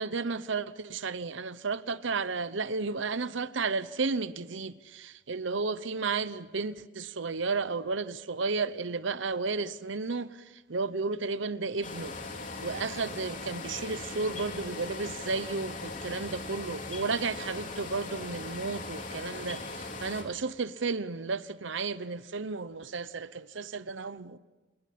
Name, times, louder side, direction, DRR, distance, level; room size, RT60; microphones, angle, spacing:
voice 1, 0.0-12.2 12.6-24.4, right 4 dB, 70° right, 0.8 m, -33 dB
sound 1, 11.8-20.2, left 3 dB, 40° left, 3.8 m, -39 dB
28.0 x 21.5 x 8.6 m
head